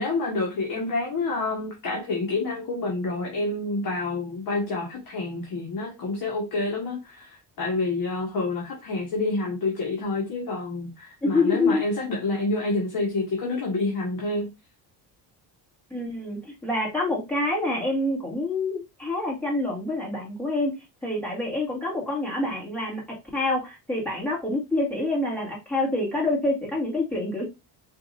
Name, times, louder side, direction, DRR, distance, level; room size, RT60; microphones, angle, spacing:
voice 1, 0.0-14.5, left 2 dB, 45° left, 1.3 m, -28 dB
voice 2, 11.2-11.8 15.9-20.8 21.0-27.5, left 2 dB, 5° left, 2.0 m, -27 dB
4.9 x 3.1 x 2.5 m
cardioid pair, 145°, 46 cm